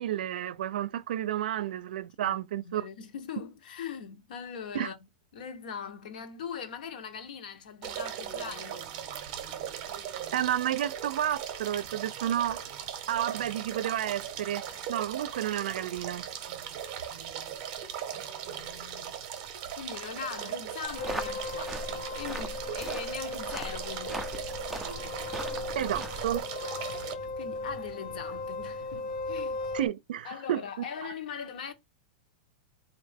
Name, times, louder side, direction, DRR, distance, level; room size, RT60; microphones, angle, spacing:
voice 1, 0.0-2.9 4.7-4.9 10.3-12.6 13.1-14.6 14.9-16.3 25.7-26.4 29.7-30.6, right 11 dB, 80° right, 0.4 m, -31 dB
voice 2, 2.2-5.0 5.3-8.8 18.1-19.2 19.7-24.3 27.4-29.7 30.2-31.7, left 7 dB, 65° left, 1.0 m, -41 dB
sound 1, 7.8-27.1, right 9 dB, 35° right, 0.7 m, -39 dB
sound 2, 20.8-26.4, right 2 dB, 5° right, 0.3 m, -40 dB
sound 3, 21.0-29.9, left 3 dB, 80° left, 1.4 m, -37 dB
4.2 x 2.6 x 3.4 m
supercardioid pair, 180°, 5 cm